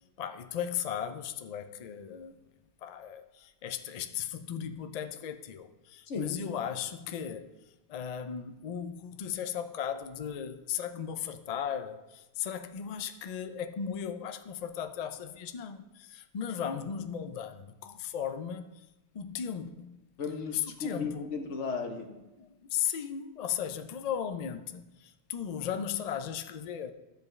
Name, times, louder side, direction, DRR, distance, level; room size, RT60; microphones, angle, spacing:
voice 1, 0.2-2.3 2.8-7.5 7.9-18.7 19.1-20.0 20.5-21.3 22.4-26.9, left 8 dB, 55° left, 0.4 m, -36 dB
voice 2, 6.1-6.4 20.2-22.1, left 5 dB, 85° left, 1.3 m, -35 dB
14.0 x 5.2 x 3.2 m
omnidirectional pair, 1.2 m